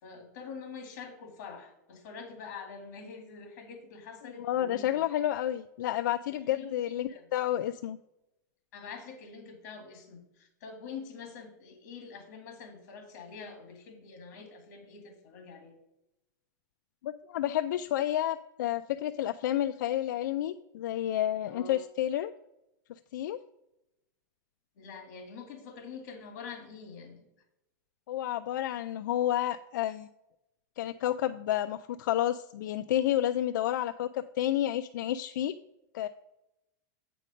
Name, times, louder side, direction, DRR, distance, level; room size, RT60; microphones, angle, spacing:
voice 1, 0.0-5.0 6.5-7.3 8.7-15.8 21.5-21.9 24.8-27.2, left 5 dB, 60° left, 6 dB, 2.1 m, -45 dB
voice 2, 4.2-8.0 17.0-22.3 23.1-23.4 28.1-30.1 30.8-35.5 35.9-36.1, left 12 dB, 90° left, 11 dB, 0.4 m, -30 dB
8.4 x 5.2 x 5.1 m, 0.89 s
supercardioid pair, 165°, 10 cm